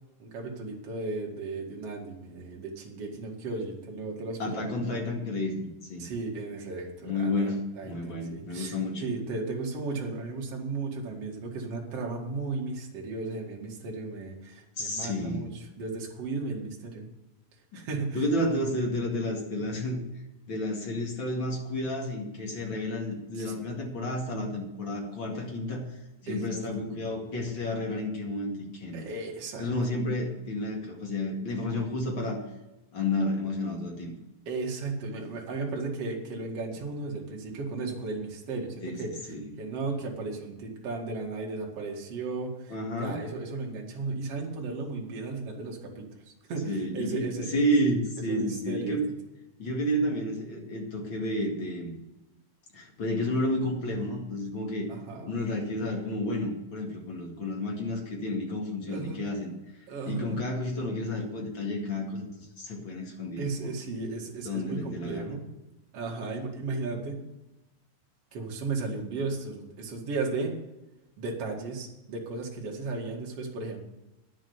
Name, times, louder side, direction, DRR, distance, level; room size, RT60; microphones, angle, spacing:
voice 1, 0.2-4.7 6.0-8.7 9.0-17.1 17.7-18.2 23.3-23.5 26.3-26.7 28.9-29.7 34.5-47.5 48.3-49.0 54.9-55.4 58.9-59.2 59.9-60.4 63.4-65.4 65.9-67.2 68.3-70.6 71.2-73.8, right 3 dB, 45° right, -1 dB, 2.9 m, -35 dB
voice 2, 4.4-6.1 7.0-9.0 14.8-15.4 17.7-17.8 18.1-20.0 20.5-25.9 26.2-29.1 29.6-32.4 32.9-34.2 38.8-39.0 39.3-39.5 42.7-43.2 46.7-49.1 49.6-51.9 52.7-54.9 55.3-62.3 62.6-63.7 64.4-65.3, left 1 dB, 40° left, 0 dB, 2.5 m, -31 dB
10.5 x 7.5 x 8.0 m, 0.99 s
omnidirectional pair, 4.1 m